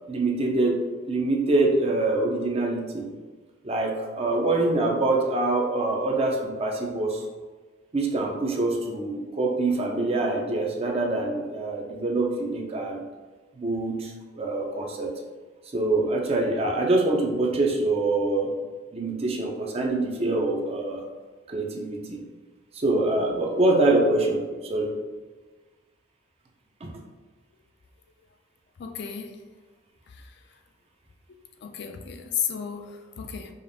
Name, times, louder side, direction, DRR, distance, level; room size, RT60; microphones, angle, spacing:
voice 1, 0.1-3.1 3.6-7.3 7.9-13.0 13.6-15.1 15.7-18.5 18.9-21.0 21.5-22.2 22.7-24.9 26.8-26.9, right 2 dB, 30° right, 0 dB, 0.5 m, -25 dB
voice 2, 28.8-29.3 31.6-33.5, left 8 dB, 55° left, 4 dB, 0.4 m, -33 dB
5.0 x 2.5 x 2.6 m, 1.4 s
head